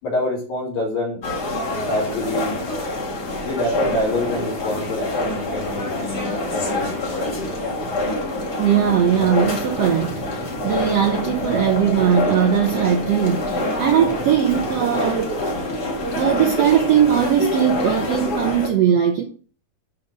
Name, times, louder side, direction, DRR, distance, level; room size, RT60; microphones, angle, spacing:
voice 1, 0.0-1.2 1.8-2.6 3.4-7.6, left 1 dB, 80° left, 5.0 m, -26 dB
sound 1, 1.2-18.7, left 1 dB, 40° left, 1.6 m, -26 dB
voice 2, 8.6-15.3 15.5-15.7 16.1-19.2, right 9 dB, 80° right, 1.5 m, -19 dB
11.0 x 4.1 x 5.1 m
omnidirectional pair, 4.0 m